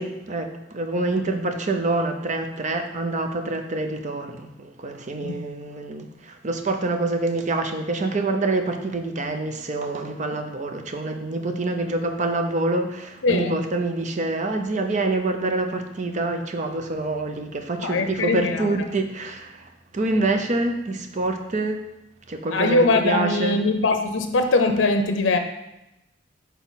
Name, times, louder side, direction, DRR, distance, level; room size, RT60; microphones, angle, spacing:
voice 1, 0.0-21.8 22.3-22.8 23.0-23.6, right 2 dB, 40° right, 6 dB, 0.6 m, -26 dB
voice 2, 13.2-13.6 17.8-18.7 22.5-25.4, left 3 dB, 85° left, 6 dB, 0.5 m, -21 dB
6.1 x 4.1 x 4.0 m, 0.92 s
head